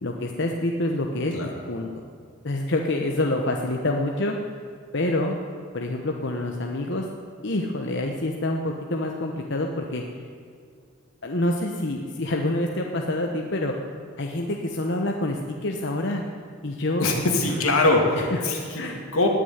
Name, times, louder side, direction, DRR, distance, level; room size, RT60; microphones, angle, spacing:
voice 1, 0.0-1.9 2.4-4.4 4.9-5.4 5.7-7.1 7.4-10.0 11.2-13.7 14.2-16.2 16.6-17.1 18.2-18.4 18.7-19.0, left 1 dB, 55° left, 2 dB, 1.0 m, -27 dB
voice 2, 17.0-18.8 19.1-19.3, left 2 dB, 80° left, 1 dB, 2.5 m, -22 dB
19.0 x 6.6 x 9.4 m, 2.2 s
head